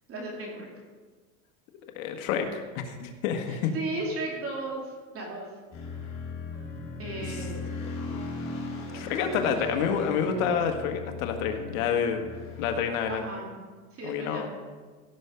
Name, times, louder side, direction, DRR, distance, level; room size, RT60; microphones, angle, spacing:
voice 1, 0.1-0.7 3.5-5.5 7.0-7.7 8.9-9.2 9.5-9.7 13.1-13.5 13.9-14.5, right 2 dB, 30° right, -2 dB, 2.8 m, -36 dB
voice 2, 2.0-3.7 8.1-8.2 8.9-12.3 12.6-13.2 14.0-14.5, left 7 dB, 70° left, 5 dB, 1.8 m, -28 dB
sound 1, 5.7-12.8, left 3 dB, 35° left, 4.2 m, -38 dB
16.5 x 7.0 x 5.1 m, 1.4 s
supercardioid pair, 130°, 43 cm